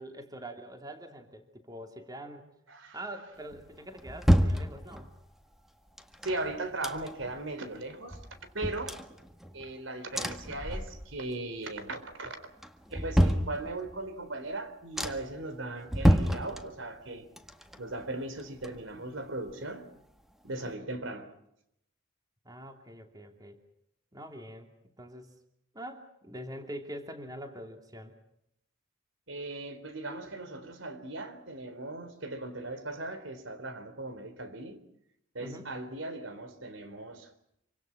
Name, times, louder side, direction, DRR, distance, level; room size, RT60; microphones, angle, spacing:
voice 1, 0.0-2.4 2.9-5.1 20.5-20.7 22.4-23.6 24.1-25.3 25.7-28.2 35.4-35.7, right 1 dB, 20° right, 2.8 m, -44 dB
sound 1, 3.5-5.3 6.0-7.4 7.7-7.8 8.1-9.7 10.1-11.3 11.6-12.1 12.6-14.1 14.5-14.6 15.0-15.4 15.9-17.1 17.4-19.2 19.5-19.6, equal, ahead, 1.7 m, -29 dB
voice 2, 6.2-8.2 8.5-8.9 9.5-12.4 12.9-17.3 17.8-19.9 20.4-21.3 29.3-34.8 35.3-37.3, right 2 dB, 75° right, 4.0 m, -38 dB
27.0 x 25.5 x 6.0 m
head